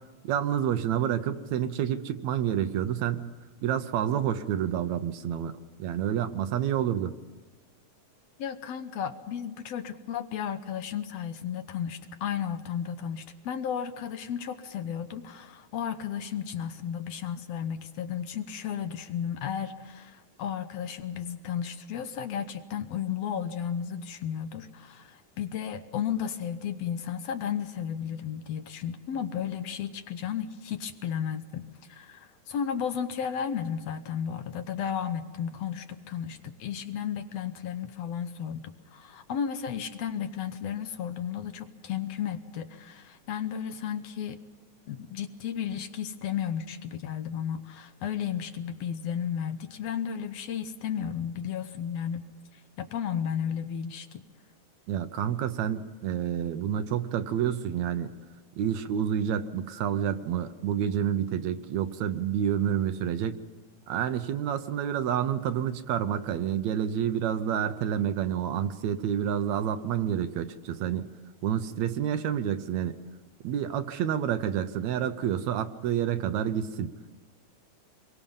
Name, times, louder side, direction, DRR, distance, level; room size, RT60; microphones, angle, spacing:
voice 1, 0.2-3.3 3.6-7.1 54.9-58.1 58.6-63.4 63.9-71.1 71.4-73.0 73.4-76.9, right 9 dB, 75° right, 10 dB, 2.0 m, -29 dB
voice 2, 8.4-44.4 44.9-52.3 52.8-54.2, left 8 dB, 70° left, 9 dB, 1.8 m, -33 dB
27.0 x 22.5 x 5.5 m, 1.3 s
omnidirectional pair, 3.4 m